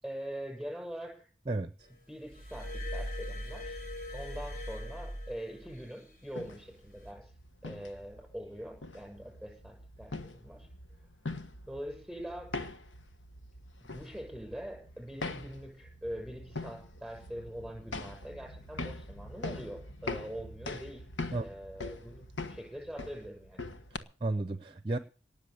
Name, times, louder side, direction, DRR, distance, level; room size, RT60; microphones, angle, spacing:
voice 1, 0.0-1.3 2.1-3.8 4.1-7.3 7.6-10.7 11.6-12.5 13.9-21.1 21.3-23.6, equal, ahead, 2 dB, 6.6 m, -43 dB
voice 2, 1.5-1.9 21.3-21.4 23.9-25.0, right 2 dB, 25° right, 11 dB, 0.7 m, -33 dB
Glass, 2.3-5.9 6.9-7.1, equal, 45° left, 4.4 m, -40 dB
sound 1, 6.2-24.0, left 2 dB, 85° left, 1.3 m, -43 dB
18.5 x 7.1 x 8.5 m, 0.39 s
head